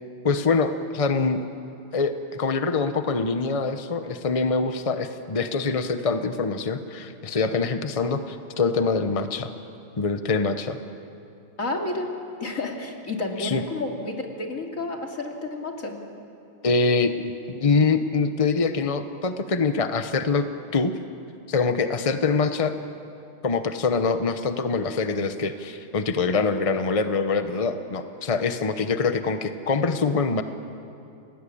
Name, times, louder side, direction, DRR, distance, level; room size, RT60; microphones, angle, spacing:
voice 1, 0.2-1.5 1.9-9.5 10.0-10.8 13.4-13.6 16.6-20.5 20.7-21.0 21.5-22.7 23.4-30.4, left 4 dB, 65° left, 8 dB, 0.3 m, -24 dB
voice 2, 11.6-12.1 12.4-15.9, left 2 dB, 35° left, 1 dB, 3.1 m, -30 dB
30.0 x 19.0 x 8.6 m, 2.6 s
omnidirectional pair, 2.4 m